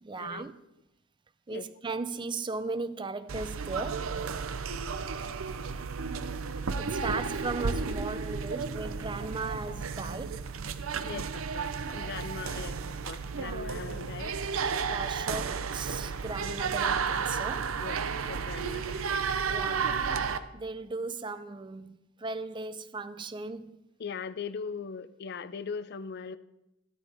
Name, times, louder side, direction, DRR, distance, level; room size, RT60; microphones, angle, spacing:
voice 1, 0.0-0.6 1.5-4.1 6.8-10.5 13.3-13.7 14.8-17.8 19.5-20.0 20.5-23.8, right 3 dB, 20° right, 0.4 m, -37 dB
sound 1, 3.3-20.4, right 5 dB, 75° right, 0.7 m, -33 dB
voice 2, 11.0-14.4 17.8-18.0 18.2-19.1 24.0-26.4, left 5 dB, 50° left, 0.5 m, -40 dB
13.5 x 12.5 x 3.5 m
head